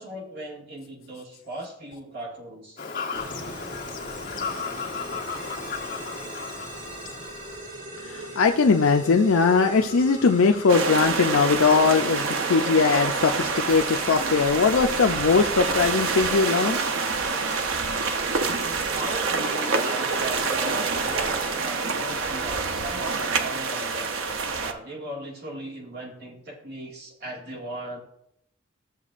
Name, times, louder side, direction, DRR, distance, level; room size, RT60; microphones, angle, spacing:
voice 1, 0.0-2.8 4.8-4.9 18.9-28.0, right 1 dB, 55° right, -1 dB, 2.0 m, -38 dB
Fowl / Bird vocalization bird call bird song, 2.8-7.8, left 4 dB, 40° left, 1.4 m, -34 dB
sound 1, 3.1-21.6, right 1 dB, 40° right, 1.9 m, -39 dB
voice 2, 8.0-16.8, left 5 dB, 75° left, 4 dB, 0.5 m, -20 dB
sound 2, 10.7-24.7, right 4 dB, 70° right, 0.7 m, -27 dB
14.0 x 7.1 x 2.5 m, 0.75 s
head